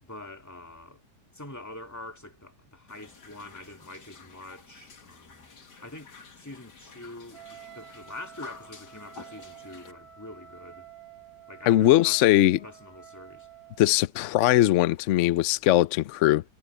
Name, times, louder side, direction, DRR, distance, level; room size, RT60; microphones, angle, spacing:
voice 1, 0.0-1.0 1.3-5.5 5.8-10.9 11.5-12.2 12.6-13.5, left 2 dB, 10° left, 2.5 m, -45 dB
sound 1, 2.9-9.9, left 4 dB, 80° left, 2.8 m, -50 dB
Wind instrument woodwind instrument, 7.3-14.0, right 8 dB, 60° right, 2.4 m, -50 dB
voice 2, 11.7-12.6 13.8-16.4, left 14 dB, 65° left, 0.7 m, -20 dB
omnidirectional pair, 1.8 m